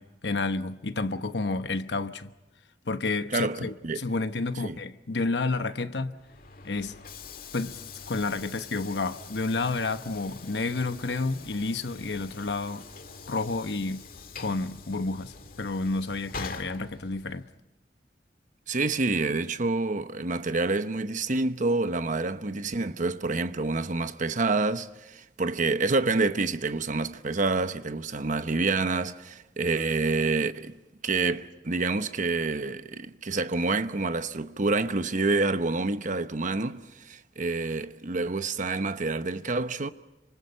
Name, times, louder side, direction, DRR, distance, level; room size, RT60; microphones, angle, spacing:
voice 1, 0.0-2.3 2.9-6.2 6.6-7.0 7.5-7.8 8.1-12.8 13.3-14.1 14.4-17.5, left 3 dB, 70° left, 1.0 m, -30 dB
voice 2, 3.3-4.0 4.6-4.8 18.7-30.7 31.0-39.9, right 3 dB, 45° right, 1.0 m, -28 dB
Train / Sliding door, 6.1-17.5, left 4 dB, 55° left, 1.8 m, -44 dB
29.0 x 25.5 x 5.6 m
head